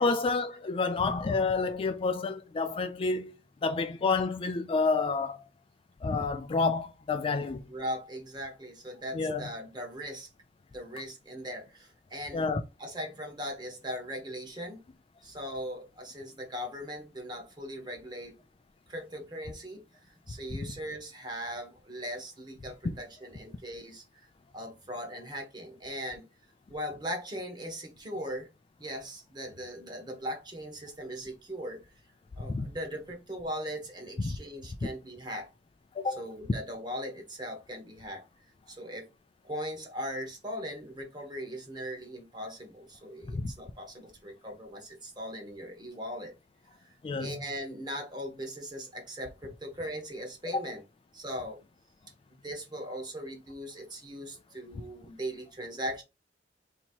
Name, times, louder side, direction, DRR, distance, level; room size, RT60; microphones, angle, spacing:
voice 1, 0.0-3.4 3.6-5.4 6.0-7.6 9.1-9.5 12.3-12.6 20.5-20.7 32.5-32.7 34.2-34.4 36.0-36.2 43.3-43.5 47.0-47.3 50.5-50.6, left 4 dB, 30° left, 0.3 m, -29 dB
voice 2, 7.7-10.3 10.7-12.5 12.8-14.8 15.2-18.4 18.9-24.3 24.5-26.3 26.7-28.5 28.8-31.8 32.4-35.5 36.2-38.2 38.7-39.1 39.4-46.3 46.8-50.8 51.1-51.6 52.4-56.0, equal, 25° right, 1.2 m, -39 dB
2.9 x 2.8 x 4.3 m
head